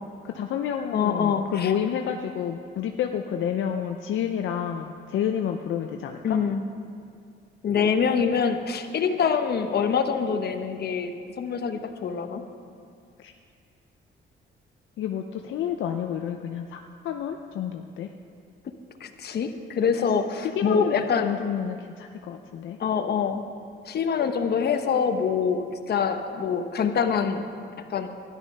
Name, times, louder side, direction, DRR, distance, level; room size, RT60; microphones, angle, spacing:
voice 1, 0.2-6.4 13.2-13.3 15.0-16.8 17.0-18.1 19.9-20.1 20.4-20.9 21.2-22.8, left 9 dB, 75° left, 4 dB, 0.6 m, -29 dB
voice 2, 0.9-1.7 6.2-6.6 7.6-12.4 19.0-21.3 22.8-23.4 23.9-27.5 27.9-28.1, left 6 dB, 55° left, 7 dB, 1.0 m, -25 dB
13.0 x 11.0 x 5.4 m, 2.3 s
cardioid pair, 90°, 20 cm